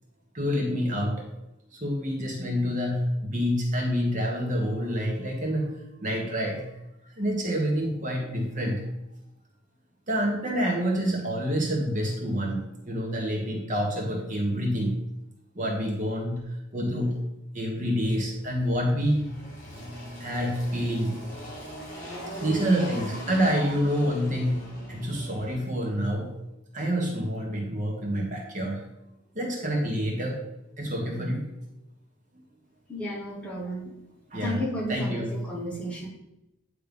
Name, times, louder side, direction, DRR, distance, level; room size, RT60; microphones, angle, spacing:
voice 1, 0.3-1.3 1.7-5.7 6.0-6.7 7.2-8.8 10.1-14.9 15.5-17.2 17.5-19.3 19.8-19.9 20.2-21.2 22.4-26.3 26.7-28.8 29.3-30.4 30.8-31.5 34.3-35.6, equal, 40° right, 0 dB, 1.3 m, -27 dB
Engine, 18.1-25.5, equal, 40° left, 2.9 m, -40 dB
voice 2, 32.9-33.9 34.4-36.1, equal, 5° left, -4 dB, 1.6 m, -33 dB
9.1 x 3.4 x 5.3 m, 0.90 s
head